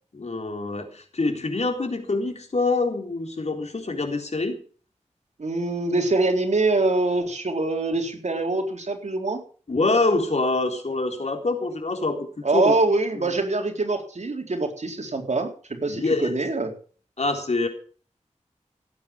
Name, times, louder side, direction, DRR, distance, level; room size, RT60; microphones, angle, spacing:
voice 1, 0.1-4.6 9.7-12.8 13.1-13.3 15.9-16.4 17.2-17.7, left 3 dB, 65° left, 4 dB, 3.9 m, -25 dB
voice 2, 5.4-9.4 12.4-15.5 15.8-16.7, right 2 dB, 70° right, 3 dB, 4.1 m, -24 dB
17.0 x 9.3 x 7.2 m, 0.42 s
wide cardioid pair, 60°, 12 cm